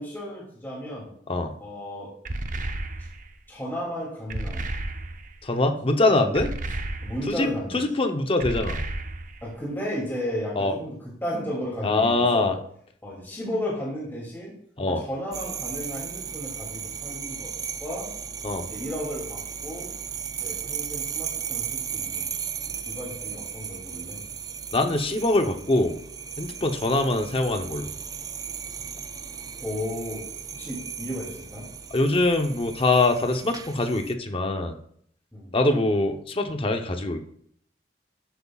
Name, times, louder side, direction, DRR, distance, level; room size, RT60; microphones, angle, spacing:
voice 1, 0.0-1.1 1.6-2.1 3.5-4.6 7.0-7.8 9.4-10.9 11.2-12.5 13.0-14.5 14.9-17.5 17.8-18.1 18.7-19.9 20.4-22.3 22.9-24.2 29.6-30.2 30.5-31.7 35.3-35.5, equal, 15° left, -5 dB, 2.7 m, -33 dB
sound 1, 2.2-3.3 4.3-5.4 6.3-7.4 8.4-9.5, right 2 dB, 50° right, 0.7 m, -32 dB
voice 2, 5.4-6.5 7.3-7.5 7.7-8.8 10.6-10.7 11.8-12.6 14.8-15.0 18.4-18.7 24.7-26.0 26.4-27.9 31.9-34.8 35.5-37.3, left 2 dB, 30° left, 5 dB, 0.8 m, -23 dB
sound 2, 15.3-34.1, right 7 dB, 20° right, 0.4 m, -36 dB
12.5 x 8.1 x 2.4 m, 0.64 s
head